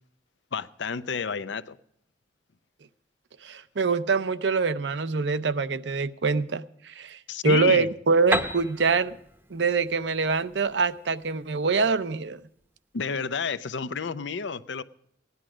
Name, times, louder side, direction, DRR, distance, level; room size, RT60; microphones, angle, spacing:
voice 1, 0.5-1.8 7.3-7.9 12.9-14.8, left 5 dB, 80° left, 0.6 m, -30 dB
voice 2, 3.4-9.2 9.5-12.4, right 4 dB, 75° right, 0.7 m, -25 dB
Piano, 8.3-12.0, right 1 dB, 10° right, 0.8 m, -33 dB
16.5 x 11.0 x 4.9 m
head